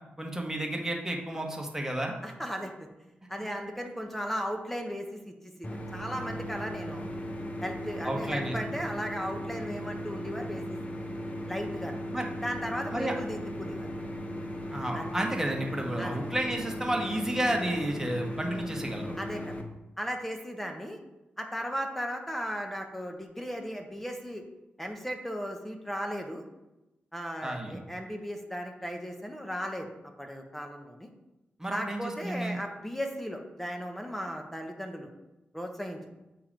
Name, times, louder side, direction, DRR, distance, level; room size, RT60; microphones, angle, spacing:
voice 1, 0.2-2.1 3.4-3.5 8.0-8.6 12.1-12.3 12.9-13.1 14.7-19.2 27.4-27.8 31.6-32.6, right 1 dB, 10° right, 1 dB, 1.3 m, -31 dB
voice 2, 2.2-2.9 3.3-7.1 7.6-10.6 11.5-12.0 12.4-14.1 14.9-15.1 16.0-16.2 19.2-19.5 20.0-21.0 21.4-24.4 24.8-26.4 27.1-29.9 30.2-31.1 31.7-35.1 35.5-36.0, equal, 5° left, 3 dB, 0.9 m, -36 dB
sound 1, 5.6-19.6, equal, 35° left, 0.8 m, -37 dB
7.4 x 3.0 x 5.1 m, 0.98 s
cardioid pair, 65°, 4 cm